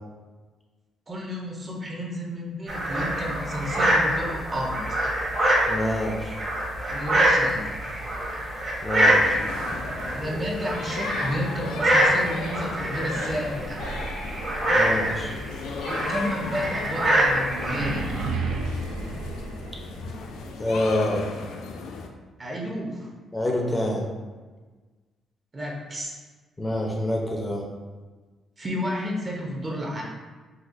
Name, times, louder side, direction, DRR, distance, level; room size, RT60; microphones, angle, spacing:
voice 1, 1.1-5.0 6.9-7.9 10.1-13.9 15.8-18.1 22.4-23.1 25.5-26.1 28.6-30.0, equal, 30° right, -2 dB, 0.7 m, -31 dB
sound 1, 2.7-18.3, right 1 dB, 45° right, 1.1 m, -25 dB
voice 2, 5.7-6.3 8.8-9.4 14.7-15.3 20.6-21.3 23.3-24.0 26.6-27.6, left 1 dB, 20° left, -1 dB, 0.6 m, -26 dB
sound 2, 9.0-22.1, left 4 dB, 85° left, 0.3 m, -36 dB
sound 3, 13.4-20.3, right 3 dB, 85° right, 0.3 m, -35 dB
4.1 x 2.2 x 2.5 m, 1.3 s
cardioid pair, 90°, 0 cm